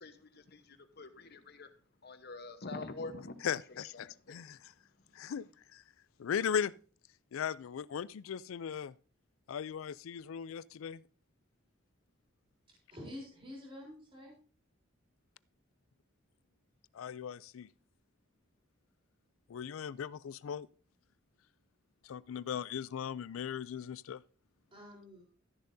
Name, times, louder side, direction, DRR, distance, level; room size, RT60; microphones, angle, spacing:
voice 1, 0.0-1.7 2.0-3.4 4.0-4.4 5.0-5.1, left 3 dB, 55° left, 1.1 m, -45 dB
voice 2, 3.4-4.7 5.1-5.5 5.7-5.8 6.2-6.7 7.3-8.9 9.5-11.0 16.9-17.7 19.5-20.7 22.0-24.2, left 8 dB, 85° left, 0.4 m, -38 dB
voice 3, 12.9-14.3 24.7-25.3, left 1 dB, 25° right, 3.8 m, -48 dB
13.0 x 10.0 x 2.7 m
head